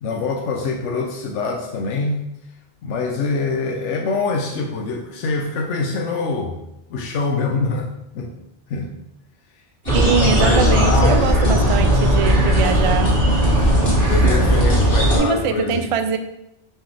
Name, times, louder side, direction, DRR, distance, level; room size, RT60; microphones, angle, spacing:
voice 1, 0.0-2.2 2.8-6.6 6.9-8.3 8.7-8.9 10.0-11.6 14.1-15.9, left 4 dB, 85° left, 1 dB, 1.0 m, -24 dB
sound 1, 9.9-15.2, equal, 60° left, 2.2 m, -17 dB
voice 2, 9.9-13.2 14.5-14.6 15.2-16.2, right 6 dB, 60° right, 7 dB, 0.3 m, -22 dB
6.3 x 4.7 x 3.3 m, 0.87 s
omnidirectional pair, 1.2 m